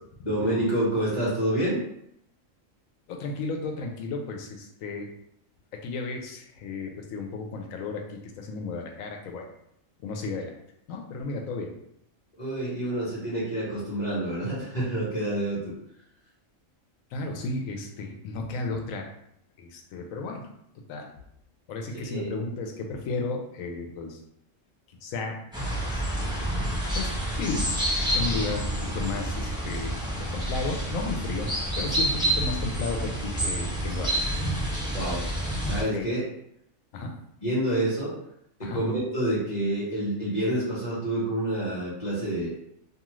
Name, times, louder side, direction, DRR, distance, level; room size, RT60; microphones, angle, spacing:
voice 1, 0.2-1.8 12.4-15.7 22.0-22.3 34.9-35.2 35.6-36.2 37.4-38.1 38.6-42.5, right 1 dB, 35° left, -9 dB, 1.1 m, -28 dB
voice 2, 3.1-5.1 5.7-9.5 10.0-10.5 10.9-11.7 17.1-19.1 19.6-20.4 20.9-21.1 21.7-24.2 25.0-25.4 25.8-26.4 26.9-27.1 27.4-27.7 28.1-34.3 34.6-34.7 35.9-36.1 36.9-37.1 38.6-38.8, left 3 dB, 80° left, 2 dB, 1.0 m, -33 dB
sound 1, 25.5-35.8, right 1 dB, 5° right, 0.7 m, -28 dB
2.7 x 2.4 x 3.0 m, 0.75 s
omnidirectional pair, 1.4 m